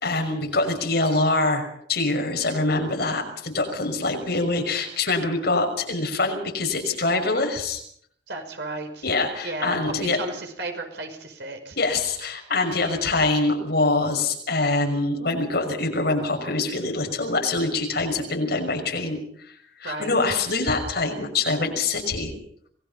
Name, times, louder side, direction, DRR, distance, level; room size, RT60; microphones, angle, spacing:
voice 1, 0.0-7.8 9.0-10.2 11.8-19.5 19.8-22.3, left 3 dB, 60° left, 3 dB, 6.0 m, -24 dB
voice 2, 8.3-9.1 9.4-11.8 19.8-20.1, right 2 dB, 70° right, 5 dB, 5.5 m, -34 dB
27.0 x 20.0 x 5.7 m, 0.65 s
head